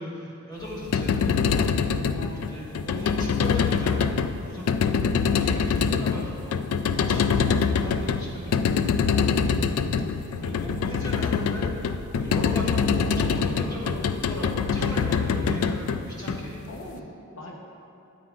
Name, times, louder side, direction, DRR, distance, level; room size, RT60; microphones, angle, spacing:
voice 1, 0.0-1.4 2.3-6.5 7.0-9.2 10.4-11.7 12.1-16.6, equal, 20° left, -6 dB, 1.4 m, -37 dB
sound 1, 0.7-16.9, left 6 dB, 85° left, 0.3 m, -25 dB
voice 2, 2.0-2.9 7.3-7.8 9.9-10.3 16.6-17.6, left 1 dB, 65° left, 0 dB, 0.7 m, -43 dB
sound 2, 6.7-15.2, right 2 dB, 20° right, 0.5 m, -41 dB
9.5 x 8.7 x 2.4 m, 2.7 s
head